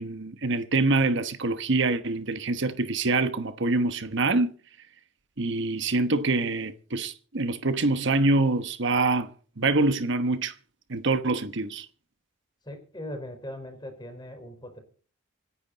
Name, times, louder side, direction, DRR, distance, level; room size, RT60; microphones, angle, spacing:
voice 1, 0.0-4.5 5.4-9.3 9.6-10.5 10.9-11.9, right 3 dB, 60° right, 1.1 m, -25 dB
voice 2, 12.6-14.8, left 1 dB, 20° left, 4.6 m, -39 dB
26.0 x 10.5 x 4.1 m
head